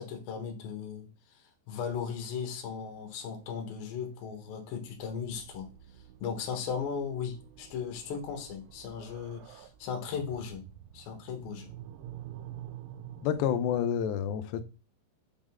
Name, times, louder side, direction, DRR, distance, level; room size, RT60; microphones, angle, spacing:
voice 1, 0.0-5.7 6.2-10.6 10.9-11.7, left 6 dB, 65° left, 2.9 m, -37 dB
sound 1, 1.9-13.9, right 11 dB, 85° right, 2.9 m, -49 dB
voice 2, 13.2-14.6, left 9 dB, 80° left, 2.8 m, -29 dB
8.8 x 3.9 x 3.7 m
omnidirectional pair, 5.3 m